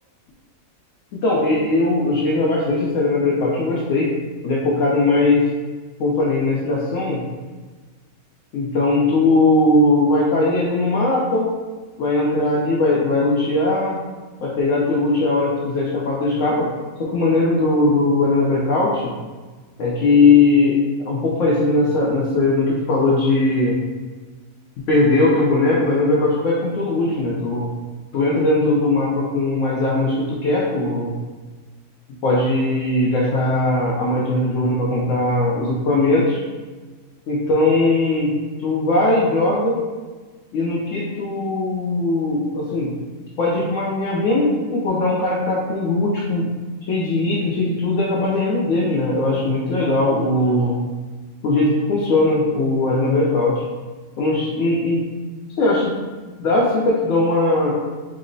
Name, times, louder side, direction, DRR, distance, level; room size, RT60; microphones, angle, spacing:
voice 1, 1.1-4.1 4.4-5.5 6.0-7.2 8.5-11.5 12.0-14.0 14.4-16.7 17.0-19.1 19.8-20.8 21.1-23.8 24.9-27.7 28.1-31.1 32.2-36.4 37.3-39.8 40.5-42.9 43.4-46.4 46.9-50.8 51.4-53.6 54.2-55.0 55.6-56.0 56.4-57.7, left 2 dB, 65° left, -5 dB, 0.9 m, -19 dB
3.7 x 2.0 x 3.8 m, 1.4 s
omnidirectional pair, 1.6 m